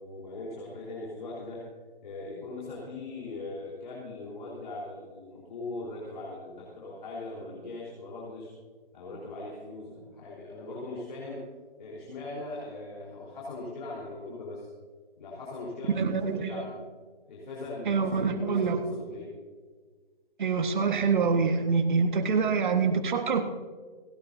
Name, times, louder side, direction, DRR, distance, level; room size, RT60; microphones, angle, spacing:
voice 1, 0.0-1.6 2.0-8.5 8.9-11.5 11.8-14.7 15.2-16.8 17.3-19.3 22.2-22.3, left 2 dB, 50° left, -5 dB, 4.4 m, -40 dB
voice 2, 15.9-16.6 17.8-18.8 20.4-23.4, right 5 dB, 55° right, 6 dB, 1.7 m, -25 dB
30.0 x 10.0 x 2.8 m, 1.5 s
hypercardioid pair, 155°, 30 cm